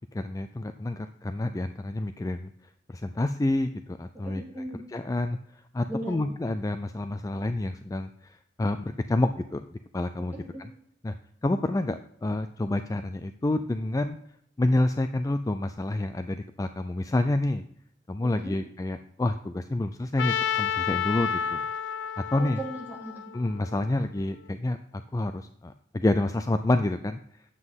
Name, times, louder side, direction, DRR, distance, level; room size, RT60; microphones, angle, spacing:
voice 1, 0.1-2.5 2.9-4.4 4.9-5.4 5.7-9.6 9.9-10.3 10.6-10.7 11.0-11.1 11.4-14.2 14.6-17.6 18.1-21.6 22.3-22.6 23.3-24.8 25.1-27.2, left 2 dB, 20° left, 9 dB, 0.3 m, -28 dB
voice 2, 4.2-4.8 5.9-6.2 10.3-10.6 18.3-18.6 22.4-23.2, right 1 dB, 10° right, -5 dB, 3.2 m, -37 dB
Trumpet, 20.2-24.2, left 8 dB, 85° left, 0.4 m, -31 dB
9.8 x 8.0 x 3.6 m, 0.73 s
head